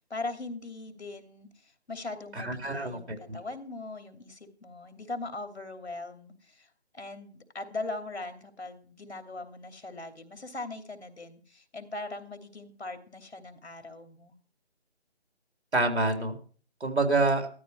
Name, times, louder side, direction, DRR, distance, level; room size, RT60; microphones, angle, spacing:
voice 1, 0.0-14.3, left 2 dB, 85° left, 7 dB, 3.0 m, -40 dB
voice 2, 2.4-3.2 15.7-16.3 16.8-17.5, right 2 dB, 75° right, 5 dB, 4.1 m, -26 dB
14.0 x 13.5 x 4.7 m, 0.42 s
figure-of-eight pair, 165°, 33 cm